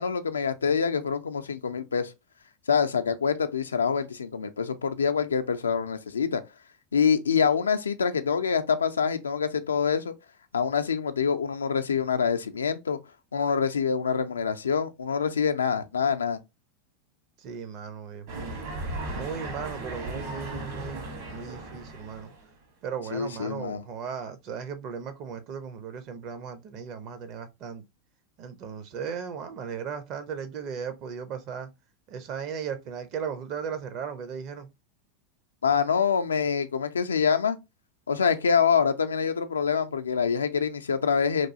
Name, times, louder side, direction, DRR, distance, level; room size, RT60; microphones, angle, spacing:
voice 1, 0.0-2.1 2.7-6.4 6.9-10.1 10.5-13.0 13.3-16.4 23.1-23.8 35.6-37.6 38.1-41.5, left 6 dB, 90° left, 0.3 m, -25 dB
voice 2, 17.4-18.6 19.1-22.3 22.8-27.8 28.4-31.7 32.1-34.7, right 7 dB, 50° right, 0.6 m, -36 dB
sound 1, 18.3-22.5, right 1 dB, 65° right, 1.4 m, -36 dB
3.0 x 2.4 x 2.6 m
hypercardioid pair, 95°, 0 cm